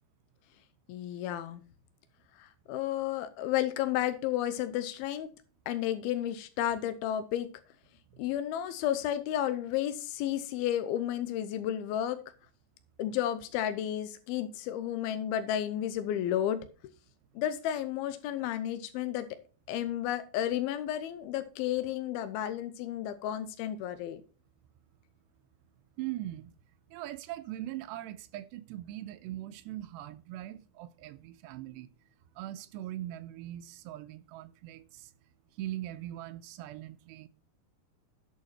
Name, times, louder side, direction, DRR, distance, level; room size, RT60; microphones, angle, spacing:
voice 1, 0.9-1.6 2.4-5.3 5.7-7.5 8.2-12.2 13.0-16.6 17.4-19.3 19.7-24.2, left 11 dB, 85° left, 2.2 m, -32 dB
voice 2, 26.0-26.5 26.9-31.9 32.4-35.1 35.5-37.3, right 14 dB, 80° right, 2.6 m, -41 dB
11.5 x 6.5 x 4.2 m
omnidirectional pair, 5.1 m